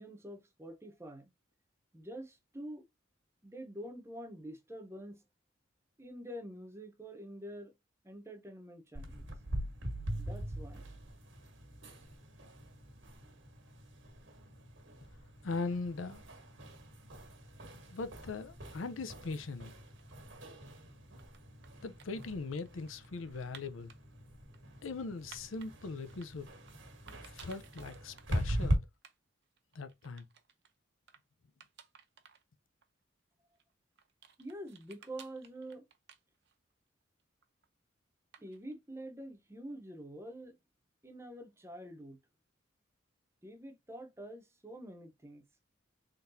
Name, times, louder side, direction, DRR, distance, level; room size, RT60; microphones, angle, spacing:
voice 1, 0.0-1.3 1.9-2.8 3.4-5.2 6.0-7.7 8.0-9.3 10.2-10.9 34.4-35.8 38.4-40.5 41.0-42.2 43.4-45.4, right 1 dB, 15° right, 0.8 m, -46 dB
sound 1, 8.9-28.8, equal, 75° right, 1.4 m, -41 dB
voice 2, 15.4-16.2 17.9-19.7 21.8-23.9 24.8-26.5 27.2-28.8 29.7-30.3, left 3 dB, 85° left, 0.6 m, -40 dB
sound 2, 19.6-20.4 21.0-24.0 24.5-25.7 26.1-26.8 27.1-28.4 28.6-28.7 28.9-29.2 29.4-30.7 31.1-31.2 31.6-32.4 32.8-32.9 33.5-36.7 37.0-37.7 38.3-38.7, right 7 dB, 55° right, 0.7 m, -58 dB
3.8 x 3.5 x 2.7 m
head